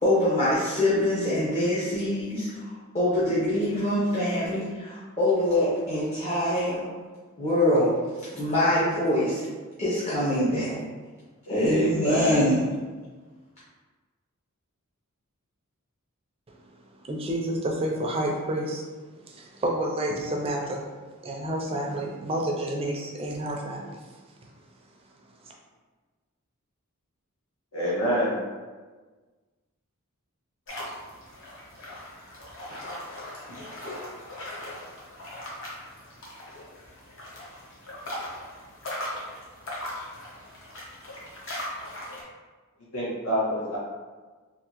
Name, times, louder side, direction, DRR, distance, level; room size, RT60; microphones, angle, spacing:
voice 1, 0.0-2.7 2.9-6.9 7.4-8.0 8.3-9.4 9.8-10.8 11.5-12.6, left 1 dB, 30° left, -9 dB, 0.7 m, -24 dB
voice 2, 11.5-12.5 27.7-28.4 42.9-43.8, equal, 85° left, -6 dB, 1.3 m, -26 dB
voice 3, 17.0-18.8 19.3-20.9 21.2-24.0, right 1 dB, 25° right, 0 dB, 0.4 m, -29 dB
sound 1, 30.7-42.2, left 1 dB, 60° left, 0.9 m, -39 dB
3.5 x 2.5 x 2.9 m, 1.4 s
head